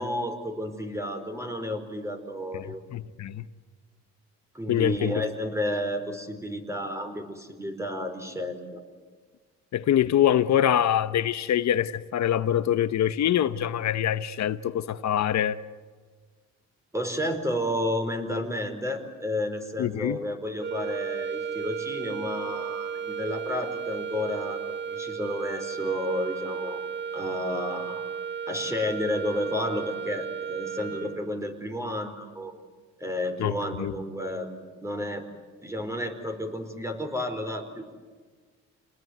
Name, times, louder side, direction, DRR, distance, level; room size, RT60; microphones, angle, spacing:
voice 1, 0.0-2.8 4.5-8.8 16.9-28.0 28.5-32.5 33.0-34.5 34.8-35.2 35.6-37.9, left 1 dB, 10° right, 4.6 m, -31 dB
voice 2, 2.5-3.4 4.7-5.2 9.7-15.6 19.8-20.2 33.4-33.9, left 10 dB, 65° left, 1.0 m, -25 dB
sound 1, 20.6-31.5, right 7 dB, 35° right, 1.1 m, -34 dB
29.5 x 20.0 x 9.4 m
cardioid pair, 90°, 30 cm